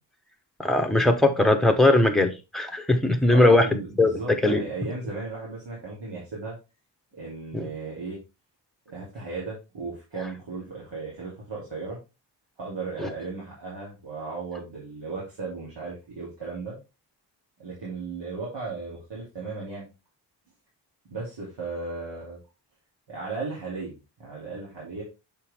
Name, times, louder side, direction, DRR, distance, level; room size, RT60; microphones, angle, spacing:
voice 1, 0.6-4.1 4.4-4.6 7.5-7.7 13.0-13.1, left 2 dB, ahead, 0.8 m, -20 dB
voice 2, 3.3-6.6 7.1-8.2 8.9-12.0 12.6-16.8 17.6-19.9 21.1-22.4 23.1-25.0, right 4 dB, 80° right, 2.8 m, -35 dB
6.6 x 4.5 x 3.4 m
wide cardioid pair, 145°, 43 cm